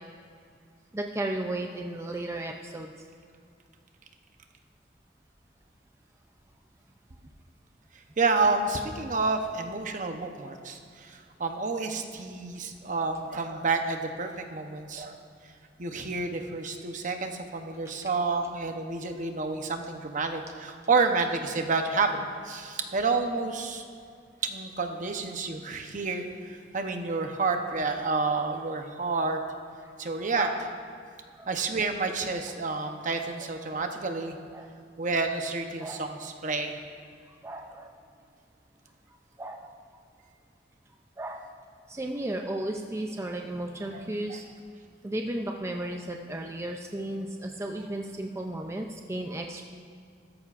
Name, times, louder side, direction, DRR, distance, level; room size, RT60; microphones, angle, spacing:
voice 1, 0.9-2.9 30.4-30.6 31.3-31.5 34.5-34.7 35.8-36.0 37.4-37.9 39.4-39.7 41.2-41.4 41.9-44.5 45.0-49.6, right 1 dB, 15° right, 2 dB, 0.5 m, -34 dB
voice 2, 8.2-15.2 15.8-23.8 24.4-29.4 30.0-30.5 31.5-34.4 35.0-36.8 43.9-44.4, right 4 dB, 45° right, 5 dB, 0.9 m, -29 dB
15.5 x 13.5 x 2.5 m, 2.3 s
head